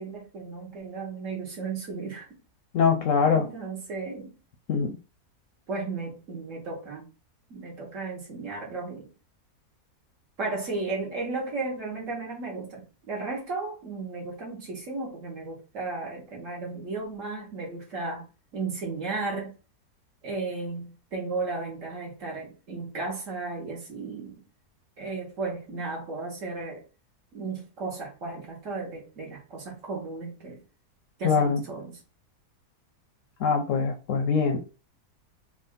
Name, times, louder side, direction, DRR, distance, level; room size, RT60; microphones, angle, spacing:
voice 1, 0.0-2.3 3.3-4.3 5.7-7.1 7.5-9.1 10.4-18.3 18.5-19.5 20.2-24.4 25.0-26.8 27.3-30.6 31.2-32.0, right 3 dB, 55° right, 1.7 m, -34 dB
voice 2, 2.7-3.5 4.7-4.9 31.2-31.6 33.4-34.6, left 5 dB, 65° left, 0.8 m, -23 dB
3.6 x 2.4 x 3.6 m
omnidirectional pair, 1.7 m